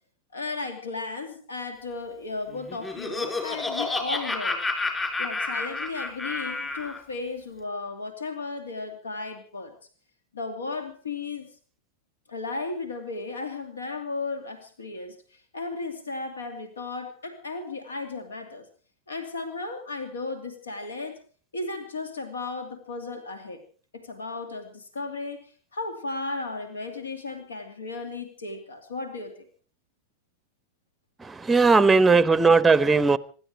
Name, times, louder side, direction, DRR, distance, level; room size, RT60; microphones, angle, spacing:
voice 1, 0.3-4.6 5.2-9.7 10.3-11.5 12.3-18.7 19.1-21.2 21.5-23.6 23.9-29.5, left 3 dB, 70° left, 2.6 m, -35 dB
Laughter, 2.5-7.0, left 3 dB, 15° left, 4.0 m, -30 dB
voice 2, 31.5-33.2, right 4 dB, 10° right, 0.8 m, -17 dB
26.0 x 12.0 x 4.7 m
figure-of-eight pair, 90°, 0 cm